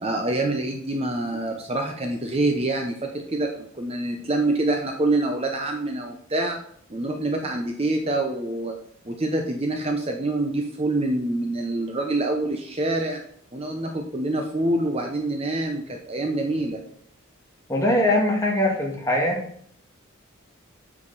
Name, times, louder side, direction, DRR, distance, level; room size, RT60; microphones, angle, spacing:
voice 1, 0.0-6.6 6.9-8.7 9.0-13.2 13.5-16.8, right 2 dB, 30° right, 3 dB, 0.8 m, -26 dB
voice 2, 17.7-19.4, left 1 dB, 15° left, -2 dB, 1.7 m, -21 dB
8.5 x 5.1 x 4.0 m, 0.62 s
head